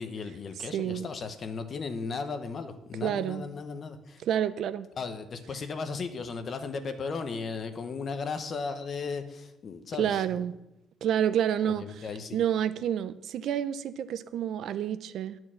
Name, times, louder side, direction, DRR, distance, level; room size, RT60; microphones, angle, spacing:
voice 1, 0.0-4.2 5.0-10.4 11.6-12.4, left 4 dB, 35° left, 8 dB, 0.8 m, -36 dB
voice 2, 0.7-1.1 3.0-3.4 4.2-4.9 10.0-10.5 11.0-12.1 12.3-15.4, right 9 dB, 55° right, 14 dB, 0.4 m, -29 dB
10.5 x 4.6 x 7.4 m, 0.91 s
cardioid pair, 165°, 0 cm